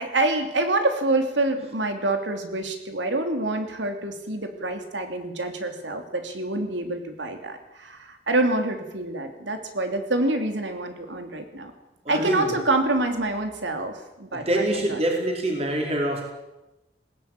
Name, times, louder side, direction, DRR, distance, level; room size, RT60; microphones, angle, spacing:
voice 1, 0.0-11.7 12.1-15.0, right 2 dB, 85° right, 6 dB, 3.1 m, -26 dB
voice 2, 12.0-12.5 14.3-16.3, right 1 dB, 35° right, 1 dB, 4.5 m, -25 dB
20.0 x 17.0 x 9.2 m, 1.0 s
head